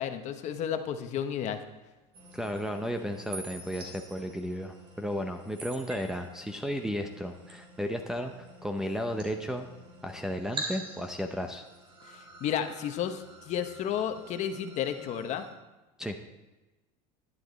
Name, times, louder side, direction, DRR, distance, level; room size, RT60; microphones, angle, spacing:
voice 1, 0.0-1.6 12.1-15.4, left 9 dB, 40° left, 8 dB, 1.0 m, -32 dB
sound 1, 2.1-15.5, right 2 dB, 30° right, 2.9 m, -46 dB
voice 2, 2.3-8.3 8.6-9.7 10.0-11.7 16.0-16.2, equal, 5° right, 3 dB, 0.6 m, -34 dB
11.5 x 11.0 x 4.0 m, 1.1 s
cardioid pair, 150°, 17 cm